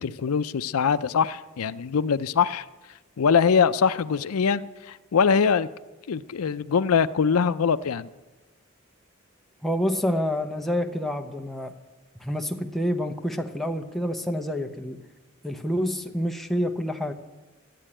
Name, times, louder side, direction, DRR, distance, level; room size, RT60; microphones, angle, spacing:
voice 1, 0.0-2.7 3.2-5.7 6.1-8.1, left 6 dB, 90° left, 14 dB, 0.5 m, -23 dB
voice 2, 9.6-11.7 12.2-15.0 15.4-17.1, equal, ahead, 3 dB, 0.8 m, -28 dB
13.5 x 10.0 x 8.8 m, 1.2 s
head